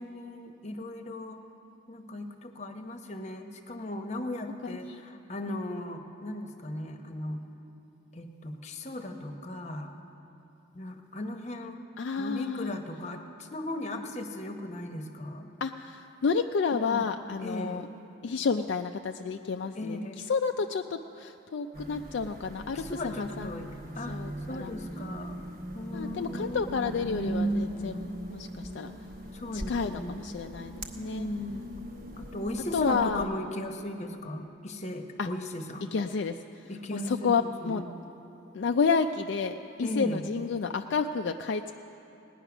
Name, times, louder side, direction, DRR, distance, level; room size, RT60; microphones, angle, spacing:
voice 1, 0.0-1.4 1.9-7.4 8.1-9.9 10.7-11.8 12.2-15.5 16.7-17.1 17.4-17.9 19.7-20.2 22.6-23.7 23.9-24.2 24.5-25.4 25.7-26.6 29.3-30.3 31.1-31.8 32.2-35.9 36.6-37.9 39.8-40.3, left 1 dB, 35° left, 6 dB, 0.8 m, -37 dB
voice 2, 4.6-5.0 12.0-12.7 15.6-17.9 18.2-20.0 20.3-23.6 24.1-24.7 25.9-28.0 28.3-28.9 29.7-31.3 32.7-33.2 35.2-35.3 35.9-36.4 36.9-37.8 38.5-41.7, left 5 dB, 60° left, 5 dB, 0.4 m, -30 dB
sound 1, 21.7-33.3, right 1 dB, 45° right, 1.0 m, -38 dB
18.5 x 10.0 x 6.0 m, 2.8 s
head